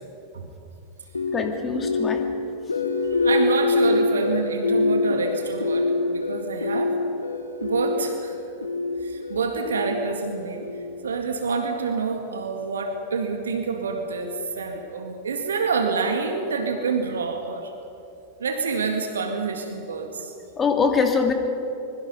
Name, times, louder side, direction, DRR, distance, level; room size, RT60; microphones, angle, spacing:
sound 1, 1.1-11.2, left 3 dB, 75° left, 1.4 m, -25 dB
voice 1, 1.3-2.2 20.6-21.3, left 5 dB, 20° left, 5 dB, 2.6 m, -23 dB
voice 2, 3.2-6.9 7.6-8.4 9.0-10.6 11.0-17.7 18.4-20.3, right 4 dB, 70° right, 5 dB, 2.0 m, -27 dB
24.5 x 22.5 x 5.6 m, 2.6 s
figure-of-eight pair, 90°, 0 cm